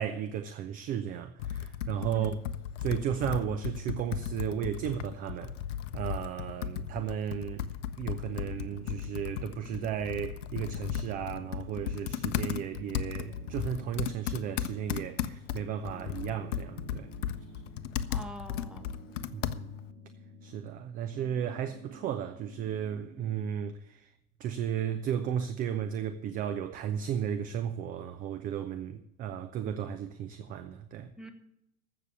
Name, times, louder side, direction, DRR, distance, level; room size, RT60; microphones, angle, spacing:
voice 1, 0.0-2.4 2.8-5.5 5.9-7.7 8.0-17.1 19.3-19.7 20.4-24.1 24.4-31.1, right 9 dB, 20° right, 0.5 m, -34 dB
Computer keyboard, 1.4-19.9, left 9 dB, 55° left, 0.8 m, -36 dB
sound 1, 8.3-10.3 10.6-12.9 13.2-15.6 15.8-18.2 18.5-20.8 21.1-23.5, right 1 dB, 80° right, 2.1 m, -50 dB
voice 2, 18.1-18.9 31.2-31.3, equal, ahead, 1.4 m, -44 dB
15.0 x 6.7 x 7.1 m
figure-of-eight pair, 90°, 44 cm